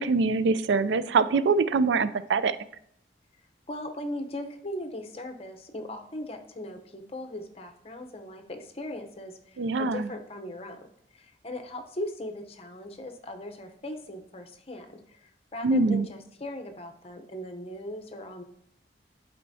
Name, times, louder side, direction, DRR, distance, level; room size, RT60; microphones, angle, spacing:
voice 1, 0.0-2.6 9.6-10.1 15.6-16.1, right 4 dB, 85° right, 14 dB, 0.4 m, -24 dB
voice 2, 3.7-10.8 11.1-18.4, left 1 dB, 35° left, 5 dB, 0.7 m, -39 dB
11.5 x 4.5 x 2.7 m, 0.73 s
head